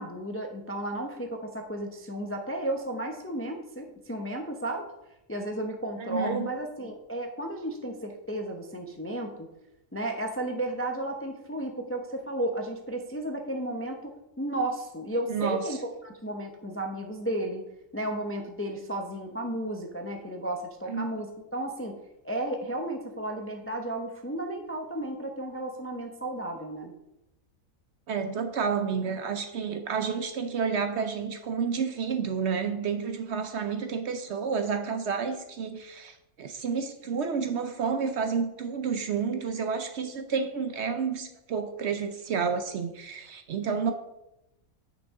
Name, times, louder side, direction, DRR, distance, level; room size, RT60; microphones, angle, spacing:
voice 1, 0.0-4.8 5.3-9.5 9.9-17.6 17.9-22.0 22.2-26.9, right 1 dB, 15° left, 3 dB, 0.4 m, -33 dB
voice 2, 6.0-6.5 15.3-15.8 20.9-21.1 28.1-43.9, right 6 dB, 60° right, 7 dB, 0.8 m, -30 dB
8.9 x 6.1 x 3.6 m, 0.90 s
omnidirectional pair, 1.5 m